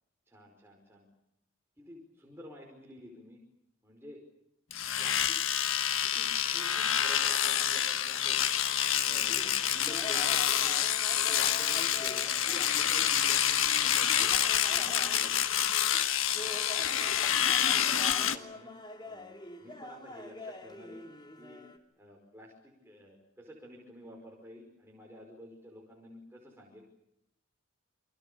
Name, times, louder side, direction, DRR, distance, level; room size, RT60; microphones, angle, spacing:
voice 1, 0.3-1.1 1.8-3.4 3.8-4.2 5.0-5.4 6.0-8.4 9.0-10.9 11.1-15.7 16.4-16.6 17.4-18.7 19.0-19.3 19.6-21.0 21.4-21.6 22.0-26.8, equal, 10° right, -1 dB, 5.2 m, -50 dB
Domestic sounds home sounds, 4.7-18.4, left 9 dB, 75° left, 1.5 m, -28 dB
sound 1, 9.3-21.8, left 2 dB, 20° left, 2.8 m, -46 dB
28.5 x 24.5 x 6.9 m, 0.82 s
head